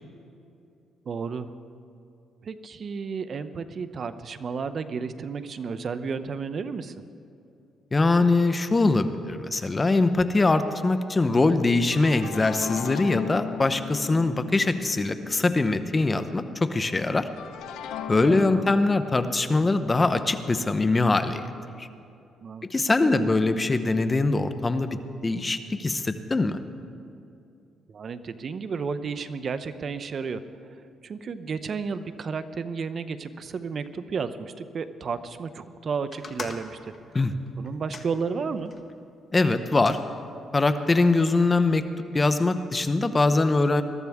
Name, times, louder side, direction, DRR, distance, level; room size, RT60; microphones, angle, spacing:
voice 1, 1.1-1.5 2.4-7.0 18.3-18.7 22.4-22.7 23.0-23.4 27.9-30.4 31.0-36.9 37.6-38.7, right 5 dB, 50° right, 11 dB, 0.7 m, -32 dB
voice 2, 7.9-17.3 18.1-21.4 21.8-21.9 22.7-26.6 37.1-37.3 39.3-40.0 40.5-41.9 42.1-43.8, left 3 dB, 25° left, 10 dB, 0.8 m, -22 dB
sound 1, 11.9-16.7 17.4-21.4, left 8 dB, 90° left, 0.7 m, -39 dB
sound 2, 36.1-38.9 39.5-40.1 40.8-41.5, left 4 dB, 45° left, 1.1 m, -43 dB
21.5 x 13.5 x 3.6 m, 2.6 s
cardioid pair, 90°, 0 cm